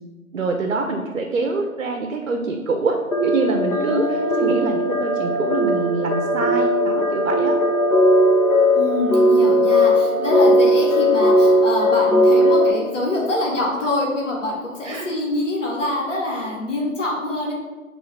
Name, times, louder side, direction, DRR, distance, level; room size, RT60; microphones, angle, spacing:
voice 1, 0.3-7.6 14.8-15.1, right 3 dB, 65° right, 4 dB, 0.5 m, -25 dB
sound 1, 3.1-12.7, equal, 80° left, 0.9 m, -18 dB
voice 2, 3.7-4.7 8.7-17.5, left 2 dB, 60° left, -3 dB, 1.2 m, -25 dB
3.6 x 2.5 x 4.4 m, 1.3 s
figure-of-eight pair, 170°, 42 cm